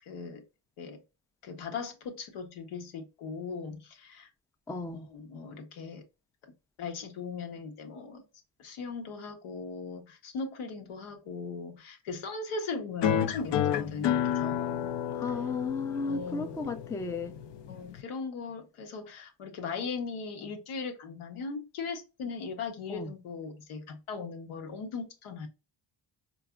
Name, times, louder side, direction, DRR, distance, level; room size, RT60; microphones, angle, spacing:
voice 1, 0.0-0.4 0.8-1.0 1.4-4.3 4.9-6.0 6.4-6.5 6.8-8.2 8.6-14.9 16.0-16.6 17.7-25.5, left 4 dB, 85° left, 1.0 m, -39 dB
voice 2, 4.7-5.1 15.1-17.3 22.9-23.1, left 4 dB, 5° left, 0.3 m, -34 dB
sound 1, 13.0-18.0, left 9 dB, 60° left, 0.5 m, -31 dB
4.7 x 2.5 x 2.2 m
cardioid pair, 70°, 48 cm